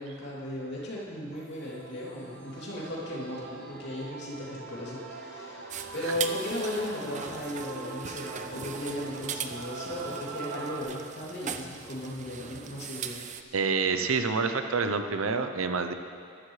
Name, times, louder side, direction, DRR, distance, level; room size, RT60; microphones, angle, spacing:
voice 1, 0.0-13.6, left 1 dB, 55° left, -6 dB, 2.9 m, -36 dB
Male singing / Female singing / Musical instrument, 1.3-10.8, right 3 dB, 55° right, 1.1 m, -43 dB
sound 1, 1.4-9.5, right 1 dB, 5° left, 0.8 m, -53 dB
sound 2, 5.7-13.4, right 7 dB, 35° right, 0.5 m, -40 dB
voice 2, 13.5-15.9, right 4 dB, 85° right, 7 dB, 0.7 m, -27 dB
14.5 x 12.5 x 3.3 m, 2.3 s
head